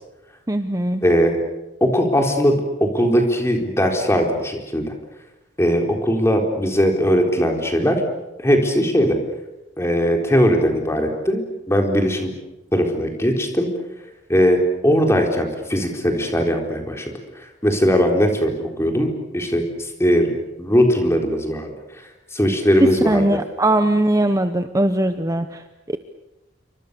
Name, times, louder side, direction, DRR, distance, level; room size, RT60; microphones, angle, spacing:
voice 1, 0.5-1.0 22.8-25.6 25.9-26.0, right 1 dB, 15° right, 9 dB, 0.9 m, -20 dB
voice 2, 1.0-1.4 1.8-4.9 5.6-8.0 8.4-9.2 9.8-12.3 12.7-13.7 14.3-17.0 17.4-19.7 20.0-20.3 20.6-21.7 22.3-23.4, equal, 15° left, 2 dB, 4.1 m, -19 dB
28.0 x 25.0 x 6.9 m, 0.99 s
head